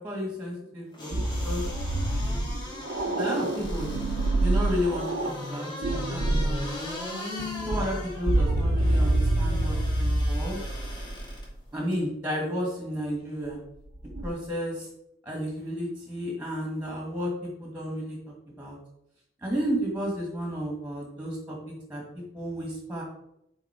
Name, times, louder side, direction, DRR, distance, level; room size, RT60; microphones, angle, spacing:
voice 1, 0.0-1.6 3.2-3.9 4.4-6.7 7.7-10.6 11.7-13.6 14.2-14.9 15.2-17.3 17.6-18.2 18.6-18.8 19.4-22.0 22.3-23.0, equal, 10° right, -2 dB, 1.7 m, -32 dB
sound 1, 0.9-11.4 11.9-12.0, left 2 dB, 30° left, 2.7 m, -39 dB
sound 2, 1.1-5.4 5.8-6.7 7.4-11.5 13.8-14.3, right 1 dB, 80° right, 0.7 m, -27 dB
7.1 x 4.0 x 4.9 m, 0.79 s
head